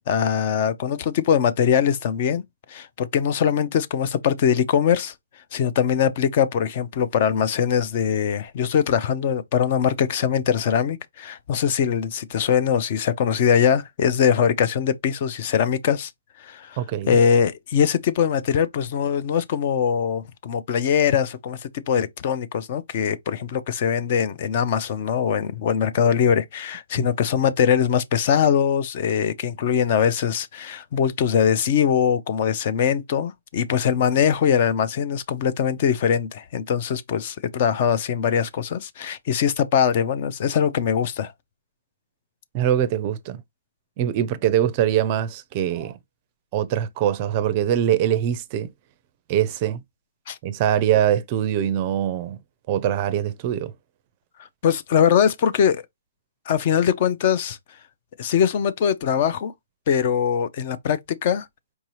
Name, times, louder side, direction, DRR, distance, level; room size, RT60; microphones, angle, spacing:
voice 1, 0.1-2.4 2.7-5.1 5.5-16.1 16.4-16.8 17.1-21.6 21.9-41.3 50.3-50.4 54.6-55.8 56.5-57.6 58.2-59.5 59.9-61.5, left 8 dB, 40° left, 0.5 m, -22 dB
voice 2, 16.8-17.2 27.0-27.1 42.5-43.4 44.0-46.0 46.5-48.7 49.3-49.8 50.4-52.4 52.7-53.7, right 10 dB, 30° right, 0.5 m, -23 dB
4.6 x 2.7 x 3.0 m
hypercardioid pair, 155°, 0 cm